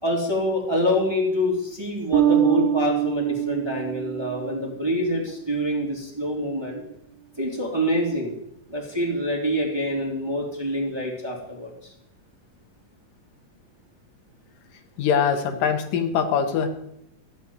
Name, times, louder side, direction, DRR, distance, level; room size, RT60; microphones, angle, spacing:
voice 1, 0.0-6.8 7.4-8.3 8.7-11.9, equal, 10° right, -1 dB, 2.3 m, -26 dB
Bass guitar, 2.1-4.8, right 11 dB, 85° right, 2.4 m, -23 dB
voice 2, 15.0-16.7, left 7 dB, 75° left, 7 dB, 2.8 m, -22 dB
14.5 x 6.4 x 9.3 m, 0.79 s
omnidirectional pair, 3.9 m